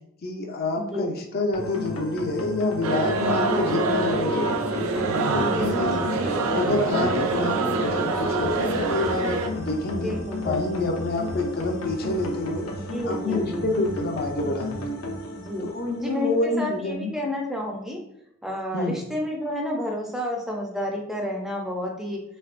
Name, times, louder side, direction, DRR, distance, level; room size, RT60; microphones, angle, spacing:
voice 1, 0.2-4.8 5.3-6.0 6.5-10.1 10.4-12.7 13.0-15.1 15.6-17.1 18.7-19.0, left 2 dB, 50° left, 3 dB, 0.5 m, -27 dB
voice 2, 0.8-1.2 5.3-6.1 9.9-10.9 12.7-13.8 15.3-15.7 16.0-18.0 18.4-22.2, left 1 dB, ahead, 0 dB, 0.4 m, -31 dB
sound 1, 1.5-16.6, left 1 dB, 90° left, 0.6 m, -33 dB
sound 2, 2.8-9.5, right 3 dB, 85° right, 0.4 m, -25 dB
3.3 x 3.2 x 2.4 m, 0.79 s
head